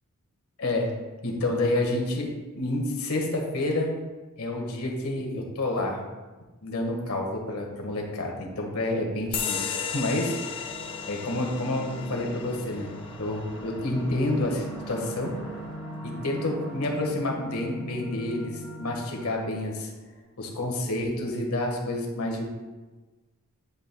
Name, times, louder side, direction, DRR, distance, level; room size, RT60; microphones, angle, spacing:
voice 1, 0.6-0.9 1.2-3.9 4.4-6.0 6.6-10.6 11.1-12.9 13.2-15.3 16.0-19.9 20.4-22.5, left 1 dB, 85° left, 1 dB, 1.7 m, -29 dB
sound 1, 9.3-16.4, left 6 dB, 25° left, 0.4 m, -36 dB
sound 2, 10.4-20.2, right 1 dB, 5° right, 2.1 m, -41 dB
9.8 x 8.5 x 2.3 m, 1.2 s
head